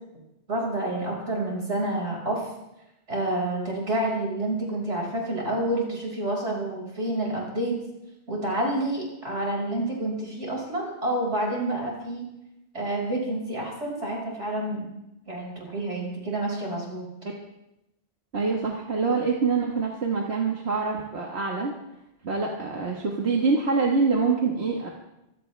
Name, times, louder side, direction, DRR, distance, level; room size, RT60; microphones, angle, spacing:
voice 1, 0.5-2.5 3.1-7.8 8.3-12.3 12.7-14.9 15.3-17.1, right 1 dB, 80° right, -2 dB, 5.9 m, -28 dB
voice 2, 18.3-21.7 22.2-24.9, right 4 dB, 65° right, -1 dB, 1.9 m, -25 dB
25.0 x 16.5 x 3.4 m, 0.90 s
omnidirectional pair, 1.2 m